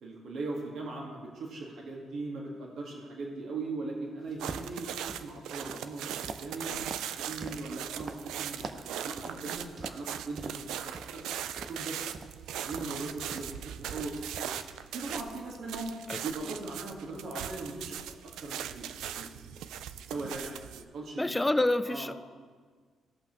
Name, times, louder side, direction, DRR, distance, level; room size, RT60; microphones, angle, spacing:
voice 1, 0.0-6.7 7.3-11.2 11.6-12.0 12.5-13.6 13.9-14.1 14.9-15.9 16.2-19.7 20.1-21.4 21.9-22.1, right 3 dB, 65° right, -1 dB, 1.6 m, -39 dB
sound 1, 4.3-5.3 5.6-8.2 8.6-8.9 9.2-10.1 10.4-11.1 11.6-13.6 13.9-14.8 15.1-15.4, right 4 dB, 45° right, 0.6 m, -44 dB
sound 2, 4.4-20.8, right 10 dB, 85° right, 0.3 m, -39 dB
voice 2, 21.2-22.1, left 1 dB, 10° left, 12 dB, 0.4 m, -27 dB
16.5 x 5.7 x 3.0 m, 1.5 s
cardioid pair, 90°, 0 cm